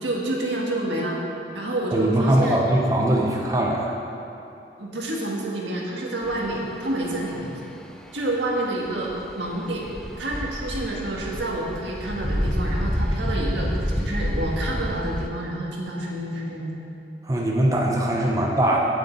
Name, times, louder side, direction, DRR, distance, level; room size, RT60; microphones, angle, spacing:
voice 1, 0.0-1.1 1.5-2.6 4.8-7.5 8.1-9.8 10.2-16.7, right 1 dB, 85° right, -2 dB, 1.7 m, -28 dB
voice 2, 1.9-3.9 17.2-18.8, right 1 dB, 20° right, -2 dB, 0.8 m, -21 dB
sound 1, 6.2-15.3, equal, 5° left, 0.3 m, -29 dB
7.9 x 6.3 x 8.0 m, 2.8 s
head